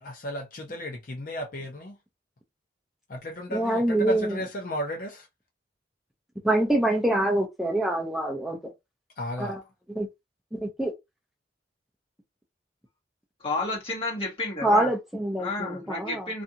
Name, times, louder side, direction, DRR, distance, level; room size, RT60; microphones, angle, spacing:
voice 1, 0.0-1.9 3.1-5.2 9.2-9.5, equal, 50° left, 0.7 m, -34 dB
voice 2, 3.5-4.4 6.4-8.6 9.4-9.6 9.9-10.1 10.5-10.9 14.6-16.3, right 1 dB, ahead, 0.5 m, -25 dB
voice 3, 13.4-14.9 15.4-16.4, left 2 dB, 30° left, 1.2 m, -31 dB
2.5 x 2.3 x 2.7 m
head